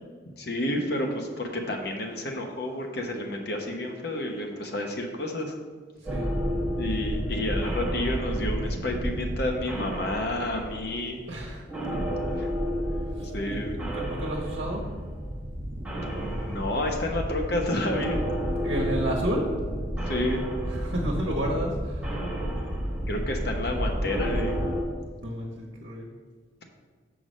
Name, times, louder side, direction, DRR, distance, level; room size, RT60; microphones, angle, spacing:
voice 1, 0.4-5.5 6.8-11.2 11.9-12.0 12.4-12.5 13.3-13.8 16.0-18.2 20.1-20.4 23.1-24.6, left 1 dB, 55° left, 2 dB, 1.1 m, -30 dB
sound 1, 6.0-11.4 11.7-24.8, equal, 5° right, 1.3 m, -31 dB
voice 2, 6.0-6.3 11.3-11.6 12.9-14.8 18.5-19.5 20.7-22.3 25.2-26.1, right 1 dB, 60° right, -1 dB, 1.2 m, -32 dB
6.1 x 4.8 x 6.4 m, 1.5 s
head